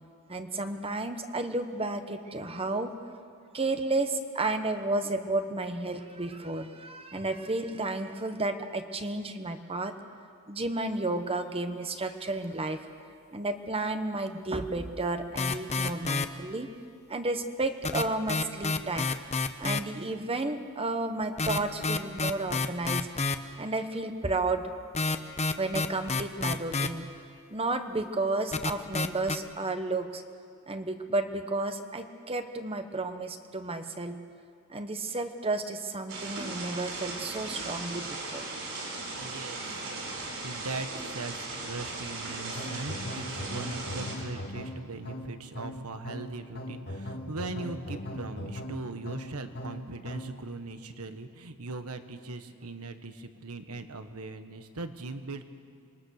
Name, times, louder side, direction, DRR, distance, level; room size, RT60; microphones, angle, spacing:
voice 1, 0.3-2.9 3.5-9.9 10.5-12.8 13.3-16.7 17.1-19.1 19.6-23.1 23.6-24.7 25.6-27.0 27.5-30.2 30.7-34.2 34.7-38.5, right 2 dB, 25° right, 8 dB, 1.2 m, -32 dB
sound 1, 15.4-16.3 17.8-19.8 21.2-23.4 24.9-26.9 28.5-29.4, left 3 dB, 30° left, 0.9 m, -28 dB
sound 2, 36.1-44.1, right 2 dB, 65° right, 6.1 m, -37 dB
voice 2, 39.2-55.4, right 3 dB, 85° right, 8 dB, 1.4 m, -40 dB
sound 3, 42.6-50.4, left 1 dB, 50° left, 1.8 m, -39 dB
27.0 x 21.5 x 6.6 m, 2.3 s
head